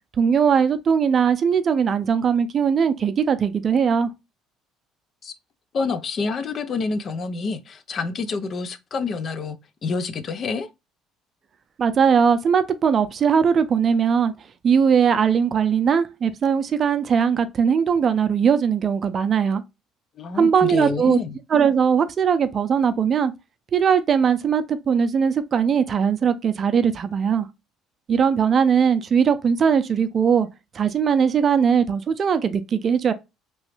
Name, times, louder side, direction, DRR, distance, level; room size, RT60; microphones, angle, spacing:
voice 1, 0.2-4.1 11.8-14.3 14.6-19.6 20.4-21.2 21.5-23.3 23.7-27.5 28.1-30.5 30.7-33.1, right 7 dB, 45° right, 0.5 m, -20 dB
voice 2, 5.7-9.6 9.8-10.7 20.2-21.4, left 4 dB, 45° left, 0.5 m, -27 dB
3.0 x 2.7 x 3.1 m
supercardioid pair, 70°, 0 cm